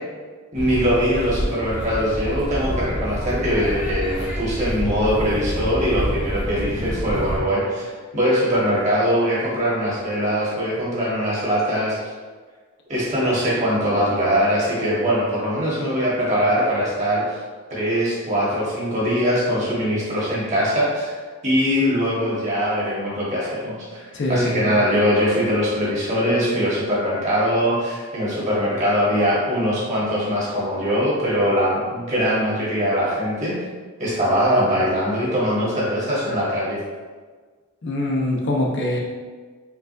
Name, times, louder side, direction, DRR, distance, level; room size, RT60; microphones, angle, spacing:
sound 1, 0.5-7.4, equal, 75° left, 1.5 m, -28 dB
voice 1, 0.5-12.0 12.9-17.2 17.7-21.1 21.4-33.6 34.0-36.8, equal, 30° right, -6 dB, 1.2 m, -22 dB
voice 2, 24.1-24.7 37.8-39.0, left 1 dB, 50° left, -2 dB, 0.6 m, -23 dB
4.6 x 3.4 x 2.5 m, 1.5 s
head